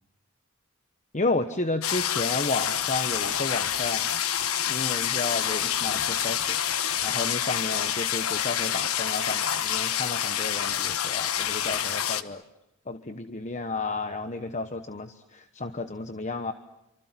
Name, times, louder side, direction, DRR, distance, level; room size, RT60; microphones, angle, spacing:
voice 1, 1.1-4.1 4.7-6.6 7.0-12.4 12.9-16.5, left 3 dB, 35° left, 9 dB, 1.1 m, -32 dB
sound 1, 1.8-12.2, left 9 dB, 70° left, 1.3 m, -27 dB
28.5 x 25.5 x 7.6 m, 0.88 s
head